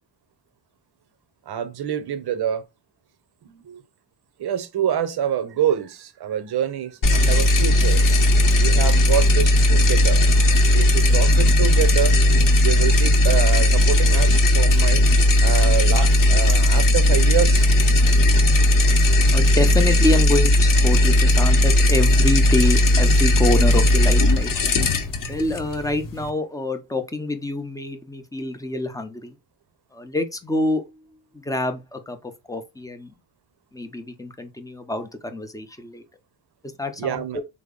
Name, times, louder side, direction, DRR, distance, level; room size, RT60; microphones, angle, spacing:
voice 1, 1.5-2.6 3.4-3.8 4.4-8.1 8.6-10.2 10.7-12.2 12.6-15.0 15.4-17.7 37.0-37.4, right 9 dB, 50° right, 0.7 m, -26 dB
sound 1, 7.0-26.3, left 1 dB, 40° left, 0.7 m, -16 dB
voice 2, 19.3-24.5 25.3-29.4 29.9-31.0 31.3-33.1 33.7-36.0 36.8-37.4, left 2 dB, 10° left, 0.5 m, -26 dB
3.3 x 2.0 x 3.6 m
cardioid pair, 75°, 49 cm